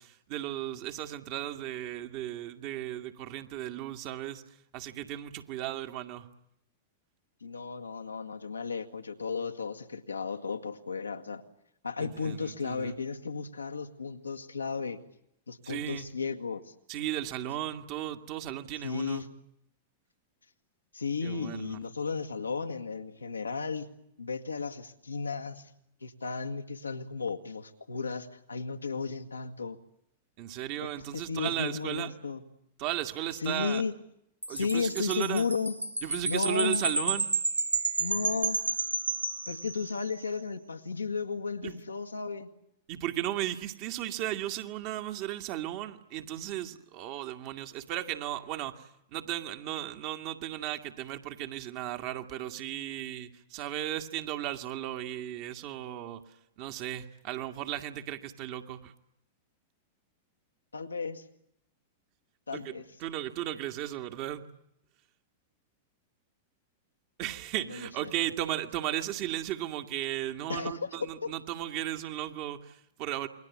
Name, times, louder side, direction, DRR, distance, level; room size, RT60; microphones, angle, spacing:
voice 1, 0.0-6.3 12.0-12.9 15.6-16.1 16.9-19.2 21.2-21.8 30.4-32.1 32.8-33.8 34.5-35.5 36.0-37.3 41.6-41.8 42.9-56.2 56.6-58.9 62.5-64.4 67.2-73.3, right 13 dB, 45° right, 2.1 m, -35 dB
voice 2, 7.4-11.4 11.8-15.0 15.5-16.7 18.8-19.3 20.9-23.9 24.2-25.7 26.0-29.8 30.8-32.4 33.4-33.9 34.5-35.7 36.2-36.8 38.0-38.6 39.5-42.5 60.7-61.2 62.5-62.8 67.7-68.1 70.5-70.9 71.2-71.3, left 4 dB, 85° left, 1.9 m, -34 dB
Wind chime, 34.4-40.1, right 3 dB, 90° right, 1.5 m, -31 dB
28.5 x 22.5 x 8.6 m
figure-of-eight pair, 95°, 0 cm